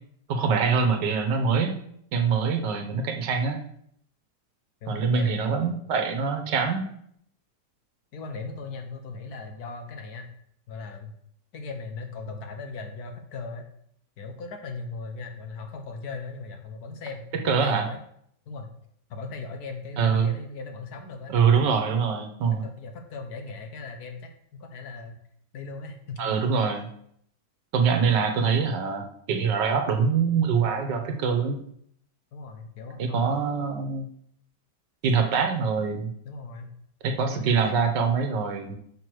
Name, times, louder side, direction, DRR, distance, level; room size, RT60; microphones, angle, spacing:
voice 1, 0.3-1.8 2.1-3.6 4.9-6.8 17.3-17.9 20.0-20.3 21.3-22.7 26.2-26.9 27.7-29.0 29.3-31.6 33.0-34.1 35.0-36.1 37.0-38.8, right 6 dB, 90° right, 5 dB, 1.7 m, -24 dB
voice 2, 4.8-5.7 8.1-10.3 10.7-11.1 11.5-13.7 14.2-18.0 18.5-18.7 19.1-22.2 22.6-25.2 25.5-26.3 32.3-33.7 35.2-35.4 36.2-36.7 37.3-37.7, left 3 dB, 65° left, 5 dB, 1.4 m, -38 dB
5.6 x 4.7 x 6.1 m, 0.68 s
omnidirectional pair, 1.9 m